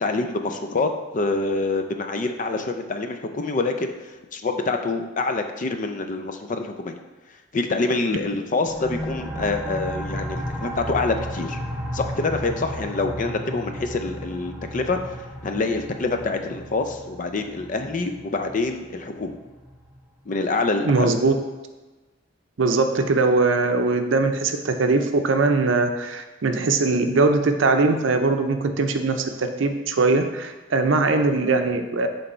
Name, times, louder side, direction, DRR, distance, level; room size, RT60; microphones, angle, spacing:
voice 1, 0.0-7.0 7.5-11.6 11.9-15.2 15.4-19.4 20.3-21.1, left 3 dB, 45° left, 6 dB, 0.5 m, -26 dB
sound 1, 8.7-20.0, equal, 5° right, 0.6 m, -34 dB
voice 2, 20.8-21.3 22.6-32.1, right 3 dB, 75° right, 6 dB, 0.6 m, -21 dB
6.5 x 3.3 x 4.3 m, 1.2 s
head